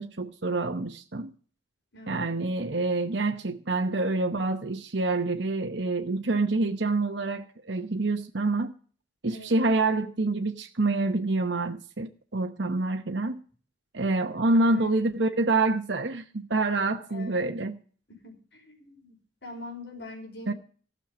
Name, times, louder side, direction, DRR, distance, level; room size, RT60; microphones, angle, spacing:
voice 1, 0.0-1.3 2.1-8.7 9.2-13.4 13.9-17.8 20.5-20.6, right 2 dB, 60° right, 1.0 m, -27 dB
voice 2, 1.9-2.5 9.3-9.8 14.5-15.1 17.1-17.6 18.2-20.5, left 2 dB, 60° left, 5.1 m, -44 dB
15.5 x 6.6 x 8.6 m
head